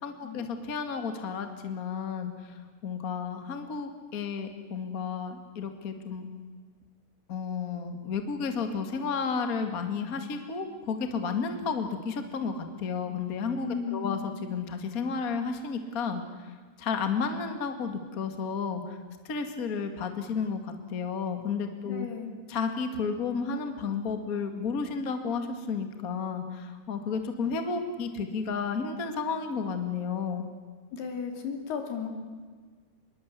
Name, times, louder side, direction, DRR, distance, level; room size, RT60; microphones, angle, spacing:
voice 1, 0.0-2.5 2.8-6.3 7.3-16.2 16.8-19.0 19.2-22.1 22.5-30.5, left 5 dB, 35° left, 6 dB, 1.6 m, -32 dB
voice 2, 13.6-14.2 21.8-22.4 30.9-32.1, left 6 dB, 75° left, 3 dB, 5.1 m, -35 dB
26.0 x 22.0 x 8.3 m, 1.5 s
omnidirectional pair, 4.6 m